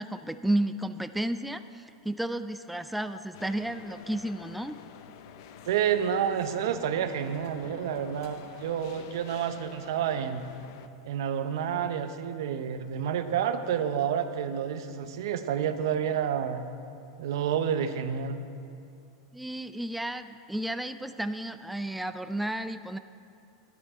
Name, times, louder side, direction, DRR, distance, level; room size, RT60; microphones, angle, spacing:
voice 1, 0.0-4.8 19.3-23.0, right 1 dB, ahead, 10 dB, 0.3 m, -32 dB
sound 1, 3.3-10.9, left 8 dB, 65° left, 0.6 m, -49 dB
voice 2, 5.7-10.5 11.0-16.6 17.2-18.4, right 8 dB, 75° right, 9 dB, 0.8 m, -29 dB
12.5 x 10.5 x 4.5 m, 2.5 s
supercardioid pair, 120°, 2 cm